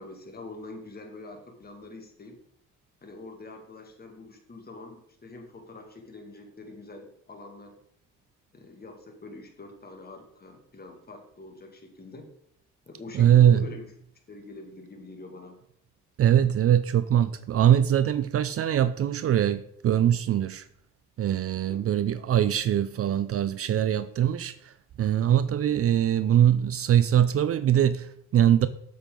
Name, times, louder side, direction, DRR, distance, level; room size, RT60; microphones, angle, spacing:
voice 1, 0.0-2.4 3.0-7.8 8.5-12.3 12.9-13.9 14.3-15.6 21.7-21.9, left 2 dB, 30° left, 2.1 m, -44 dB
voice 2, 13.1-13.6 16.2-20.6 21.2-28.7, right 10 dB, 50° right, 0.5 m, -22 dB
8.4 x 7.2 x 3.8 m
cardioid pair, 90°, 30 cm